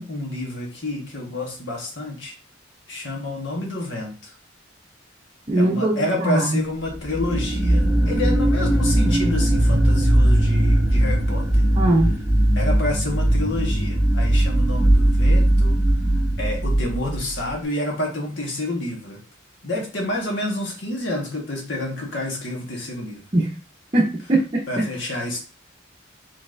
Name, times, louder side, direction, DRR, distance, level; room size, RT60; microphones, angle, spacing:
voice 1, 0.0-2.3 2.9-4.3 5.6-11.6 12.6-15.8 16.3-19.2 19.6-23.2 24.7-25.4, left 1 dB, 65° left, 0 dB, 1.4 m, -29 dB
voice 2, 5.5-6.6 11.7-12.1 23.3-23.6 23.9-24.8, right 1 dB, 30° right, -2 dB, 0.6 m, -21 dB
sound 1, 6.9-17.5, right 1 dB, 5° right, 1.3 m, -19 dB
4.1 x 3.9 x 2.6 m, 0.34 s
head